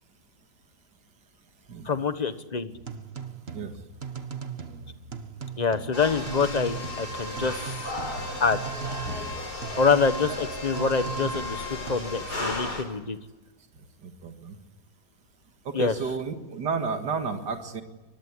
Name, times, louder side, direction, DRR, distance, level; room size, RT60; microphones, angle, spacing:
voice 1, 1.8-2.7 5.6-7.6 8.4-8.6 9.8-13.2 15.7-15.9, left 5 dB, 25° left, 11 dB, 1.2 m, -25 dB
sound 1, 2.7-12.0, right 6 dB, 40° right, 1.5 m, -39 dB
sound 2, 5.9-12.8, left 1 dB, 65° left, 5.2 m, -34 dB
voice 2, 14.0-14.6 15.7-17.8, right 5 dB, 80° right, 6 dB, 2.5 m, -31 dB
23.5 x 21.0 x 9.8 m, 1.1 s
omnidirectional pair, 1.8 m